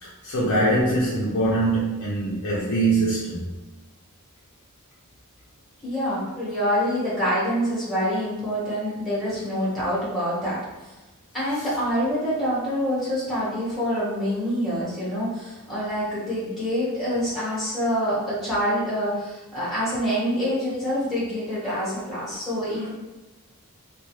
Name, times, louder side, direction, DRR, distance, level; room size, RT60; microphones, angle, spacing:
voice 1, 0.0-3.5 21.7-21.8, right 2 dB, 65° left, -6 dB, 0.5 m, -23 dB
voice 2, 5.8-10.6 11.3-22.9, equal, ahead, -9 dB, 1.1 m, -26 dB
2.3 x 2.3 x 3.0 m, 1.1 s
head